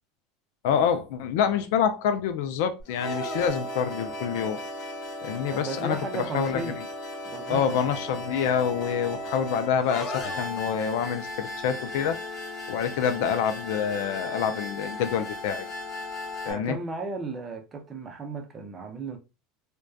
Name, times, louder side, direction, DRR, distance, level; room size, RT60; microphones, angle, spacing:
voice 1, 0.6-4.6 5.2-6.7 7.5-12.2 12.7-15.7 16.5-16.8, left 8 dB, 75° left, 0.4 m, -27 dB
sound 1, 2.8-16.5, left 1 dB, 40° left, 0.9 m, -36 dB
voice 2, 5.5-6.8 7.2-7.9 16.5-19.2, right 4 dB, 25° right, 0.6 m, -35 dB
2.6 x 2.2 x 2.3 m
supercardioid pair, 135°, 0 cm